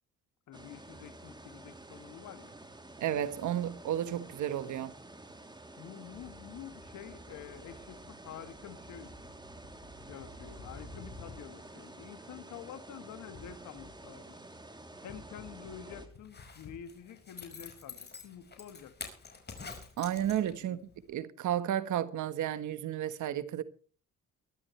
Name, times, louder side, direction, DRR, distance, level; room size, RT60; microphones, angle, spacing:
voice 1, 0.5-2.5 5.8-9.4 10.1-14.4 15.0-18.9 20.6-20.8, left 9 dB, 80° left, 2.4 m, -48 dB
sound 1, 0.5-16.1, right 2 dB, 15° right, 3.2 m, -50 dB
voice 2, 3.0-4.9 20.0-20.8 21.1-23.6, right 11 dB, 75° right, 1.5 m, -32 dB
sound 2, 6.1-11.8 13.3-14.2 15.1-16.8, left 2 dB, 60° left, 6.7 m, -53 dB
Zipper (clothing), 16.2-20.8 21.1-21.2, left 5 dB, 35° left, 5.3 m, -47 dB
23.0 x 12.5 x 3.3 m
cardioid pair, 90°, 30 cm